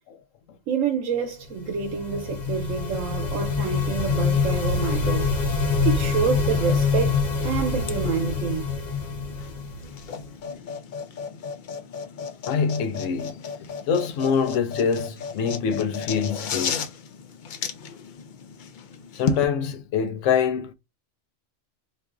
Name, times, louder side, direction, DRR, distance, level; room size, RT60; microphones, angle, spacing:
voice 1, 0.7-8.6, right 6 dB, 85° right, 1.1 m, -28 dB
sound 1, 1.5-10.3, left 5 dB, 40° left, 0.9 m, -25 dB
sound 2, 7.8-19.4, left 6 dB, 65° left, 0.5 m, -34 dB
voice 2, 12.5-16.9 19.1-20.7, left 6 dB, 80° left, 1.0 m, -25 dB
4.5 x 2.4 x 2.3 m
omnidirectional pair, 1.3 m